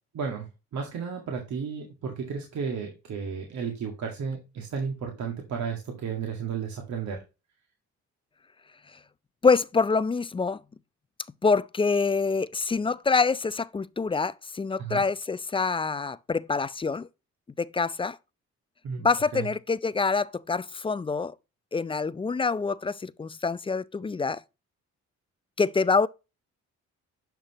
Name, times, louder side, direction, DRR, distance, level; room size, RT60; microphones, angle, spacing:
voice 1, 0.1-7.2 14.8-15.1 18.8-19.1 19.3-19.5, right 6 dB, 70° right, 2.0 m, -33 dB
voice 2, 9.4-10.6 11.4-17.1 17.6-18.2 19.0-21.3 21.7-24.4 25.6-26.1, left 4 dB, 20° left, 0.4 m, -26 dB
10.5 x 5.9 x 3.0 m
cardioid pair, 90°, 30 cm